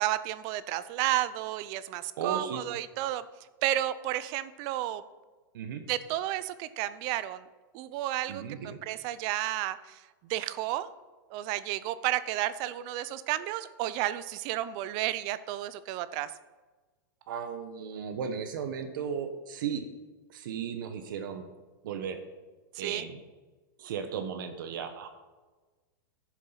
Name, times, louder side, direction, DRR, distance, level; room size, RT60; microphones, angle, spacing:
voice 1, 0.0-3.3 3.6-5.0 5.9-7.4 7.7-10.0 10.3-10.9 11.3-16.3 22.7-23.0, right 14 dB, 35° right, 16 dB, 0.5 m, -32 dB
voice 2, 2.2-2.6 5.5-5.8 8.3-8.8 17.3-19.8 20.3-21.5 21.8-22.2 22.8-23.2 23.8-25.1, right 7 dB, 65° right, 8 dB, 1.0 m, -35 dB
11.0 x 7.3 x 5.7 m, 1.3 s
supercardioid pair, 160°, 11 cm